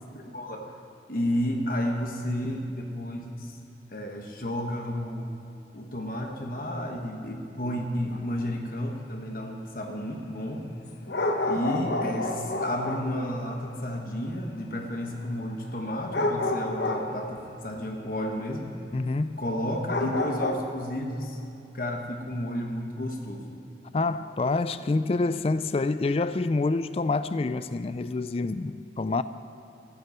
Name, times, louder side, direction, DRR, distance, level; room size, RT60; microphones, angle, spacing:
voice 1, 0.1-0.7 1.1-3.5 3.9-5.3 5.7-10.6 11.4-18.7 19.4-21.4 21.7-23.5, equal, 50° left, 2 dB, 1.2 m, -31 dB
sound 1, 8.1-8.3 11.1-13.2 16.1-17.2 17.8-17.9 18.1-18.2 18.9-19.0 19.9-20.5, left 2 dB, 70° left, 1.1 m, -29 dB
voice 2, 18.9-19.4 23.9-29.2, left 3 dB, 35° left, 13 dB, 0.3 m, -27 dB
14.0 x 8.0 x 9.5 m, 2.8 s
head